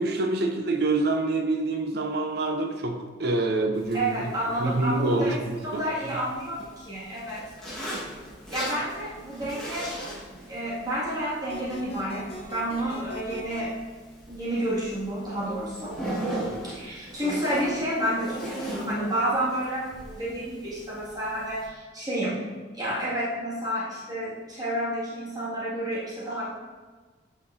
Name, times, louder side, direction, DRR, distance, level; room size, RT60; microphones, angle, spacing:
voice 1, 0.0-4.3 4.6-5.8, right 2 dB, 60° right, 5 dB, 0.6 m, -26 dB
Zipper (clothing), 3.7-21.7, right 1 dB, 5° left, 1.4 m, -39 dB
voice 2, 3.9-5.4 5.7-7.4 8.5-9.9 10.3-13.7 14.3-15.9 16.6-26.4, right 1 dB, 20° right, -9 dB, 1.9 m, -30 dB
sound 1, 11.5-13.6, equal, 30° left, 0.7 m, -41 dB
8.1 x 5.2 x 2.6 m, 1.4 s
head